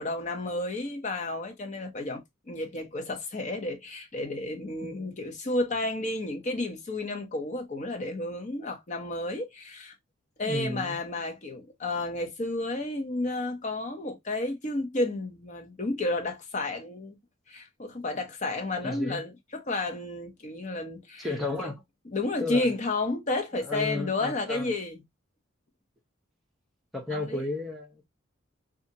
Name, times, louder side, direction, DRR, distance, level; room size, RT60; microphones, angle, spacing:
voice 1, 0.0-9.9 10.4-17.2 17.5-21.3 21.6-21.7 22.1-25.0 27.1-27.4, left 2 dB, 35° left, 0.7 m, -31 dB
voice 2, 4.8-5.2 10.4-11.0 18.8-19.3 21.2-21.8 22.4-22.7 23.6-24.8 26.9-28.1, left 2 dB, ahead, 0.7 m, -33 dB
2.8 x 2.4 x 2.7 m
head